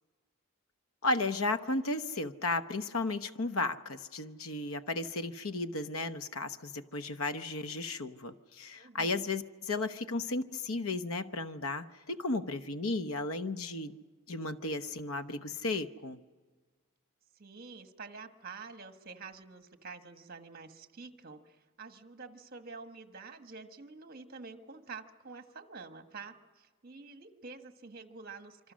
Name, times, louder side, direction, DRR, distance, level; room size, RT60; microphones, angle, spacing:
voice 1, 1.0-14.0 14.3-16.2, left 2 dB, 80° left, 10 dB, 1.0 m, -34 dB
voice 2, 8.7-9.3 17.3-28.7, right 4 dB, 45° right, 7 dB, 1.5 m, -48 dB
26.5 x 25.5 x 6.4 m, 1.4 s
head